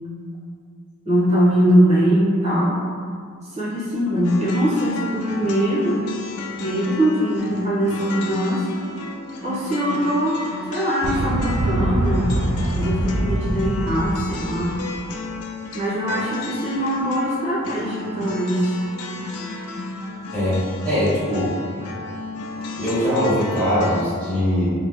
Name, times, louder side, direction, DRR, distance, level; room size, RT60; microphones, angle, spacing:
voice 1, 1.1-2.8 3.5-6.0 6.6-8.7 9.4-10.4 10.7-12.3 12.7-14.8 15.7-18.7, equal, 30° right, -9 dB, 0.8 m, -21 dB
sound 1, 4.2-24.0, left 3 dB, 80° left, 0.3 m, -33 dB
sound 2, 11.0-14.9, right 1 dB, 80° right, 0.4 m, -24 dB
voice 2, 20.3-21.5 22.8-24.7, equal, 5° left, -12 dB, 0.7 m, -21 dB
2.9 x 2.0 x 3.3 m, 2.1 s
head